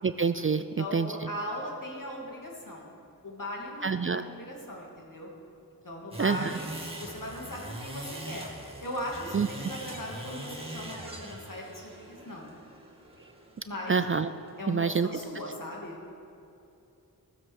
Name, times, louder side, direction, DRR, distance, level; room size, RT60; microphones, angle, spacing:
voice 1, 0.0-1.3 3.8-4.2 6.2-6.5 9.3-9.5 13.9-14.3 14.7-15.1, right 5 dB, 35° right, 11 dB, 0.4 m, -27 dB
voice 2, 0.6-2.9 3.2-5.3 5.8-6.7 7.0-8.4 8.8-12.5 13.6-14.0 14.6-16.0, left 1 dB, 55° left, -2 dB, 2.6 m, -39 dB
sound 1, 6.1-15.3, right 1 dB, 15° right, 2.0 m, -42 dB
15.0 x 7.6 x 6.5 m, 2.8 s
wide cardioid pair, 50°, 37 cm